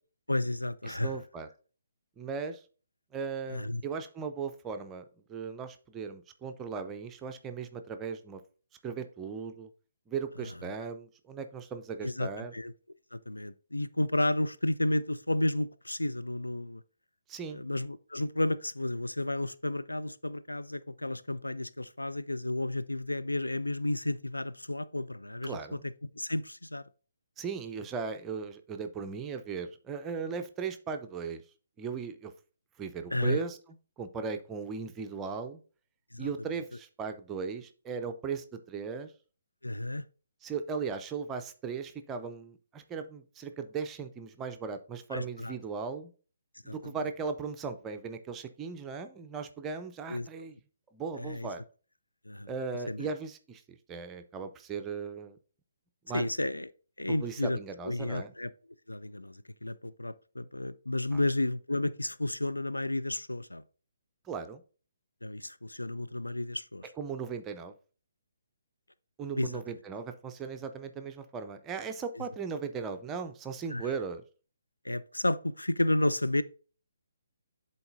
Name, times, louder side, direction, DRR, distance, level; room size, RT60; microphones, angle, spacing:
voice 1, 0.3-1.2 3.5-3.8 12.0-12.7 13.1-16.8 17.5-25.8 26.1-26.8 33.1-33.4 36.1-36.3 39.6-40.0 45.1-45.6 46.7-46.9 50.1-50.3 51.2-51.5 52.3-52.5 52.9-53.1 56.1-56.7 57.0-57.6 57.8-58.5 58.9-63.6 65.2-66.9 69.4-69.6 73.7-73.9 74.8-76.4, left 1 dB, 80° left, 0.4 m, -32 dB
voice 2, 0.9-1.5 2.2-2.6 3.1-8.4 8.8-9.7 10.1-12.5 17.3-17.7 25.4-25.9 27.4-31.4 31.8-32.3 32.8-33.6 34.0-35.6 36.2-39.1 40.4-46.1 46.6-50.6 50.9-51.6 52.5-55.4 56.0-56.3 57.1-58.3 61.1-61.2 64.2-64.6 67.0-67.7 69.2-74.2, right 5 dB, 15° right, 0.5 m, -37 dB
10.5 x 4.0 x 2.6 m
figure-of-eight pair, 135°, 0 cm